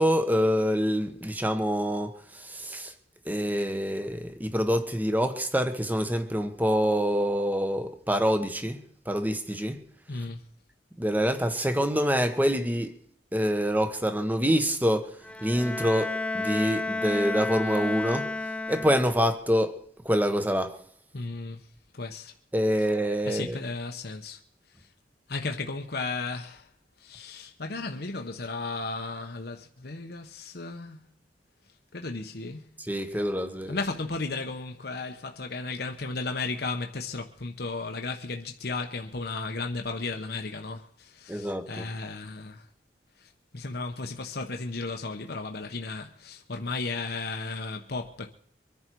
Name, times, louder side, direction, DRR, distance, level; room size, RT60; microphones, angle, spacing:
voice 1, 0.0-2.9 3.2-8.8 9.1-9.8 11.0-12.9 13.3-15.1 15.4-18.3 18.7-19.8 20.0-20.8 22.5-23.6 32.8-33.8 41.3-41.9, equal, 10° right, 1.2 m, -26 dB
voice 2, 10.1-10.4 21.1-21.7 21.9-22.3 23.3-24.4 25.3-26.7 27.0-31.0 31.9-32.7 33.7-42.7 43.2-48.3, left 3 dB, 60° left, 1.1 m, -34 dB
Bowed string instrument, 15.2-19.3, left 2 dB, 5° left, 0.5 m, -32 dB
24.0 x 10.5 x 4.7 m
head